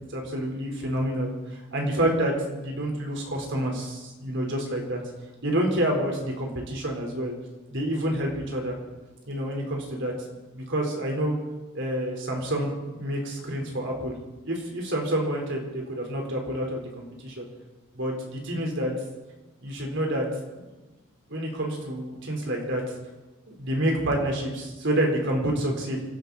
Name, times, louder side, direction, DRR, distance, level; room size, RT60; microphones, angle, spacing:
voice 1, 0.1-5.0 5.4-7.3 7.7-8.8 9.3-10.1 10.5-11.4 11.7-14.1 14.4-17.5 17.9-18.9 19.6-20.3 20.5-20.6 21.3-22.8 23.6-26.0, right 1 dB, 55° right, 1 dB, 3.9 m, -28 dB
27.0 x 12.5 x 4.1 m, 1.2 s
head